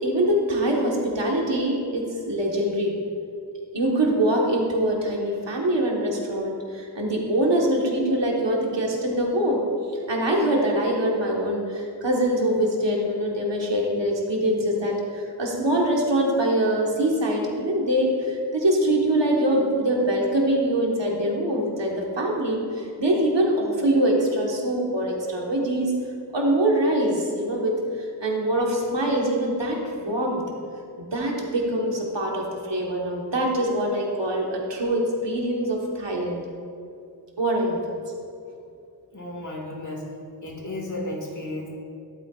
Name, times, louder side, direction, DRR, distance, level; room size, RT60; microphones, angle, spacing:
voice 1, 0.0-2.9 3.7-9.6 10.1-25.9 26.3-30.4 31.0-36.4 37.4-37.8, right 1 dB, 80° right, -1 dB, 1.4 m, -24 dB
voice 2, 39.1-40.1 40.4-41.7, left 1 dB, 45° left, -1 dB, 1.9 m, -33 dB
11.5 x 8.6 x 2.4 m, 2.5 s
wide cardioid pair, 50°, 43 cm